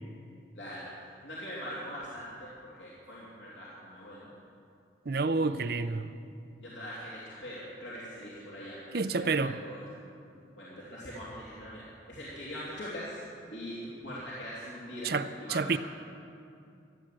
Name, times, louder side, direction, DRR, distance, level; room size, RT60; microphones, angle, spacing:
voice 1, 0.6-0.9 1.2-4.3 5.1-5.5 6.6-9.8 10.6-13.2 13.5-13.7 14.0-15.1 15.4-15.6, equal, 85° left, -8 dB, 2.9 m, -42 dB
voice 2, 5.1-6.1 8.9-9.6 15.0-15.8, right 4 dB, 55° right, 11 dB, 0.6 m, -29 dB
15.0 x 10.5 x 7.6 m, 2.5 s
head